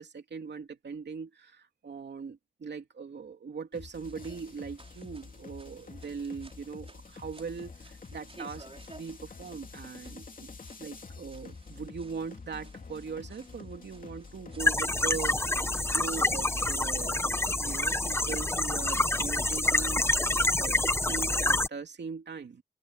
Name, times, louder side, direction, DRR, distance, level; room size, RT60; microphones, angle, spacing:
voice 1, 0.0-10.5 10.8-15.6 15.9-20.1 20.6-22.6, right 5 dB, 85° right, 2.8 m, -40 dB
sound 1, 3.7-19.6, left 4 dB, 50° left, 2.7 m, -48 dB
sound 2, 4.0-16.2, right 3 dB, 35° right, 5.3 m, -57 dB
sound 3, 14.6-21.7, left 2 dB, 15° left, 0.9 m, -27 dB
open air
wide cardioid pair, 115°, 17 cm